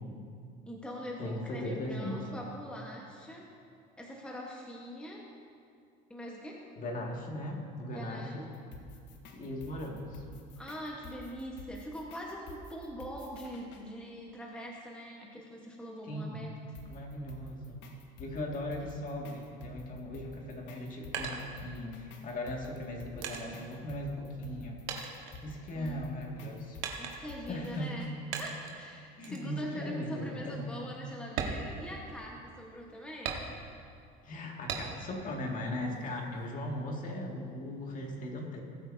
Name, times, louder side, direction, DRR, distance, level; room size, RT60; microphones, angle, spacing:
voice 1, 0.7-3.5 4.0-5.3 6.1-6.6 7.9-8.4 10.6-16.5 25.7-26.0 27.0-28.1 28.4-33.4, equal, 5° left, -2 dB, 1.2 m, -43 dB
voice 2, 1.2-2.3 6.8-8.4 9.3-10.2 16.0-16.5 16.9-17.8 18.2-24.8 25.4-26.8 27.5-28.0 29.2-30.8 34.2-38.6, left 1 dB, 40° left, 0 dB, 2.1 m, -38 dB
sound 1, 8.5-13.9 16.8-28.1, left 3 dB, 65° left, 1.4 m, -50 dB
sound 2, 20.6-22.1 22.7-24.6 24.9-26.0 26.8-27.5 28.3-28.8 29.2-29.5 29.9-30.0 30.5-30.6 31.2-32.5 33.2-33.9 34.7-35.2 35.6-36.5, right 6 dB, 80° right, 1.4 m, -39 dB
19.0 x 8.3 x 2.7 m, 2.3 s
supercardioid pair, 105°, 20 cm